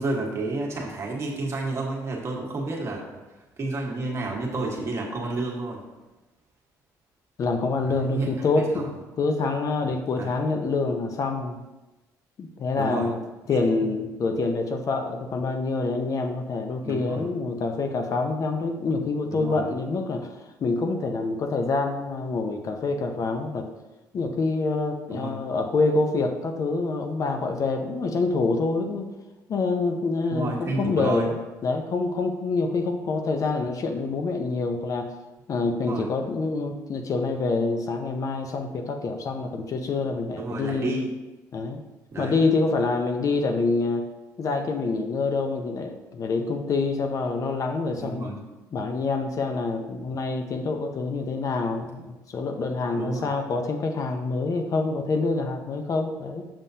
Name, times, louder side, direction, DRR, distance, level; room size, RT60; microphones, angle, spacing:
voice 1, 0.0-3.0 3.6-5.8 7.8-8.3 8.7-8.9 10.2-10.5 12.8-13.1 13.8-13.9 16.8-17.3 19.3-19.7 25.1-25.3 30.3-31.3 35.6-36.1 40.4-41.1 42.1-42.4 48.0-48.4 53.0-53.3, right 2 dB, 40° right, -2 dB, 1.5 m, -30 dB
voice 2, 7.4-11.6 12.4-13.2 13.5-20.3 20.6-23.7 24.1-29.1 29.5-31.3 31.6-35.1 35.5-41.0 41.5-41.8 42.2-44.1 44.4-48.3 48.7-56.4, left 3 dB, 50° left, 5 dB, 0.7 m, -26 dB
7.0 x 5.5 x 2.8 m, 1.1 s
cardioid pair, 90°, 7 cm